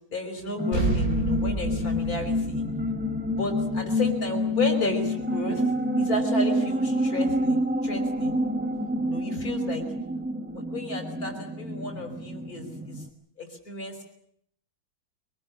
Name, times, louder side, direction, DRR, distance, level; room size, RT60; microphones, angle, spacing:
voice 1, 0.1-2.6 3.4-5.6 6.0-8.4 9.1-9.9 10.7-13.0 13.4-14.0, left 2 dB, 45° left, 4 dB, 5.6 m, -32 dB
sound 1, 0.6-13.1, equal, 5° right, 0.9 m, -28 dB
sound 2, 0.7-5.5, right 2 dB, 45° right, 4.1 m, -31 dB
24.0 x 19.0 x 8.7 m, 0.70 s
omnidirectional pair, 2.2 m